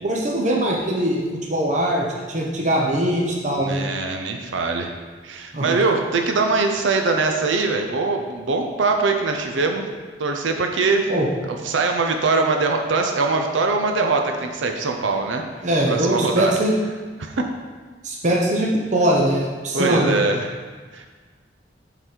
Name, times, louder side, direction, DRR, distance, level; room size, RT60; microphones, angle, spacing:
voice 1, 0.0-1.2 1.5-3.8 5.5-5.8 11.1-11.3 15.6-16.8 18.0-20.2, right 1 dB, 40° right, -2 dB, 0.8 m, -21 dB
voice 2, 3.6-4.9 5.2-9.8 10.2-15.4 15.9-16.5 17.2-17.4 19.7-20.6 20.9-21.1, right 3 dB, 85° right, 4 dB, 0.6 m, -22 dB
7.8 x 4.0 x 4.5 m, 1.5 s
head